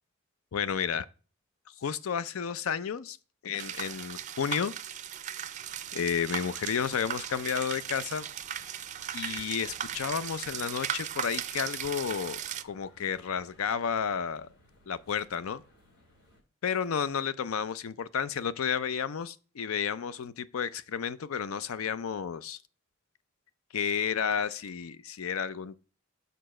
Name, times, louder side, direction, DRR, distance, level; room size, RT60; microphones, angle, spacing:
voice 1, 0.5-1.1 1.8-3.2 3.4-4.7 5.9-8.3 9.1-14.5 14.9-15.6 16.6-22.6 23.7-25.8, left 7 dB, 80° left, 0.5 m, -32 dB
sound 1, 3.6-12.6, right 9 dB, 35° right, 0.4 m, -37 dB
sound 2, 5.6-16.4, left 1 dB, 60° left, 2.8 m, -60 dB
6.8 x 4.0 x 6.3 m
head